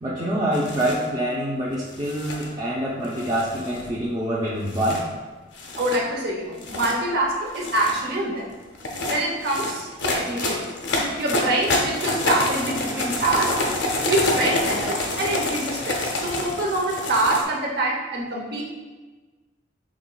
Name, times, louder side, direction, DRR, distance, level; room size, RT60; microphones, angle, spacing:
voice 1, 0.0-5.1, right 1 dB, 20° right, -6 dB, 0.5 m, -25 dB
sound 1, 0.5-1.0 1.9-2.5 3.2-3.9 4.7-5.0 5.6-6.0 6.5-7.0 7.5-8.1 8.8-17.4, left 2 dB, 70° left, 0.6 m, -27 dB
voice 2, 5.7-8.5 9.1-10.6 11.2-13.5 14.1-18.6, right 2 dB, 55° right, -1 dB, 0.7 m, -25 dB
6.0 x 3.0 x 2.2 m, 1.3 s
head